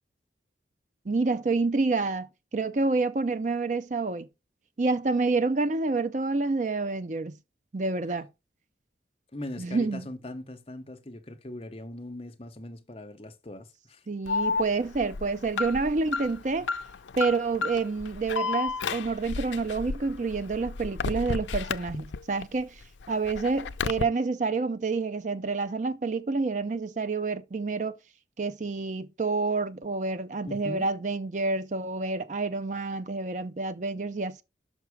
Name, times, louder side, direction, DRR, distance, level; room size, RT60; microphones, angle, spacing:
voice 1, 1.1-4.3 4.8-7.4 7.7-8.3 9.6-10.0 14.1-16.7 17.2-22.8 23.1-27.9 28.4-34.4, right 3 dB, 40° right, 0.5 m, -28 dB
voice 2, 9.3-14.0 30.4-30.9, left 1 dB, 30° left, 0.9 m, -40 dB
Alarm, 14.3-22.4 22.8-24.0, left 4 dB, 90° left, 0.5 m, -32 dB
6.0 x 5.9 x 4.7 m
head